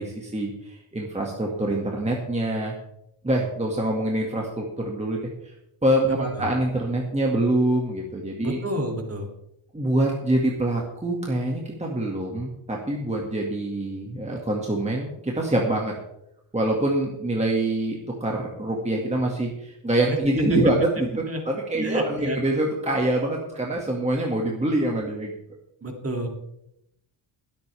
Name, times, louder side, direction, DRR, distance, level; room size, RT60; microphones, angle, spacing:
voice 1, 0.0-2.7 3.2-5.2 5.8-8.6 9.7-15.9 16.5-25.3, right 1 dB, 15° right, -1 dB, 2.0 m, -25 dB
voice 2, 6.1-6.5 8.4-9.3 21.3-21.4 21.8-22.4 25.8-26.3, right 1 dB, 30° right, 2 dB, 2.7 m, -29 dB
21.5 x 8.6 x 3.5 m, 0.80 s
cardioid pair, 115°, 48 cm